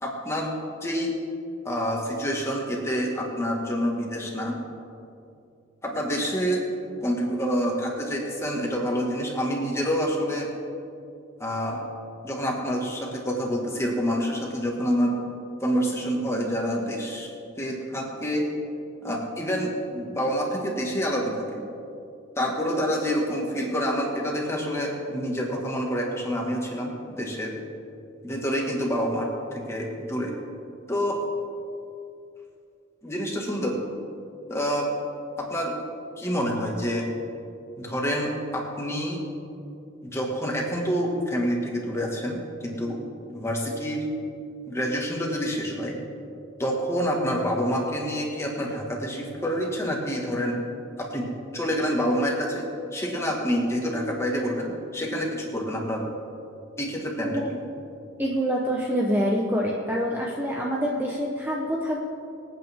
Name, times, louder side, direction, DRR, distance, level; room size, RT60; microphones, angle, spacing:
voice 1, 0.0-0.5 0.8-1.1 1.6-4.6 5.8-6.6 7.0-10.5 11.4-11.8 12.2-15.2 15.6-17.3 17.6-18.4 19.0-21.6 22.4-27.5 28.2-30.3 30.9-31.2 33.0-33.8 34.5-34.9 35.4-35.8 36.2-37.1 37.8-39.2 40.0-43.0 43.3-44.1 44.7-46.0 46.6-50.6 51.0-52.7 52.9-56.0 56.8-57.6, equal, 15° left, -1 dB, 1.9 m, -27 dB
voice 2, 58.2-62.0, equal, 10° right, -3 dB, 1.0 m, -26 dB
25.5 x 9.0 x 3.7 m, 2.6 s
head